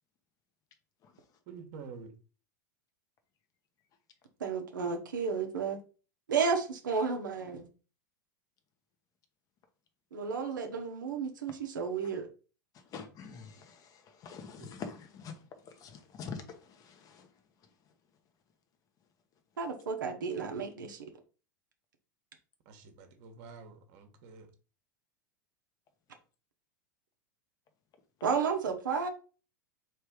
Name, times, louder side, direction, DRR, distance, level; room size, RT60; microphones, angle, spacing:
voice 1, 1.5-2.1 14.6-14.7 22.6-24.5, right 5 dB, 55° right, 1.2 m, -48 dB
voice 2, 4.4-5.8 6.3-7.7 10.1-12.3 19.6-21.0 28.2-29.1, right 5 dB, 80° right, 0.9 m, -32 dB
voice 3, 12.9-13.5 14.2-15.0 15.2-15.3 15.8-16.4, left 6 dB, 35° left, 1.0 m, -42 dB
3.3 x 3.2 x 4.7 m
hypercardioid pair, 95°, 10 cm